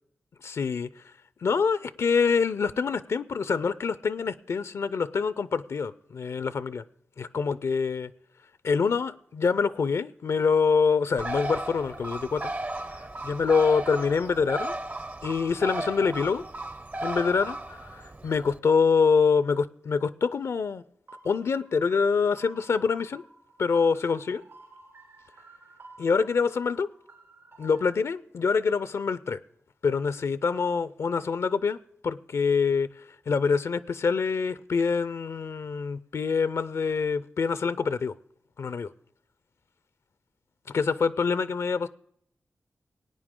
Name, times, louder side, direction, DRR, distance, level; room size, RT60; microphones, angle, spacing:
voice 1, 0.4-1.0 1.4-6.8 7.2-8.1 8.6-12.5 13.0-14.7 15.2-16.4 17.0-20.8 21.2-23.2 23.6-24.4 26.0-26.9 27.6-29.4 29.8-31.8 32.0-38.1 38.6-38.9 40.7-41.9, left 5 dB, 70° left, 0.4 m, -25 dB
Bird, 11.2-18.6, right 2 dB, 35° right, 0.6 m, -35 dB
sound 1, 21.1-27.9, right 3 dB, 65° right, 3.4 m, -52 dB
18.0 x 9.1 x 3.7 m
cardioid pair, 45°, 5 cm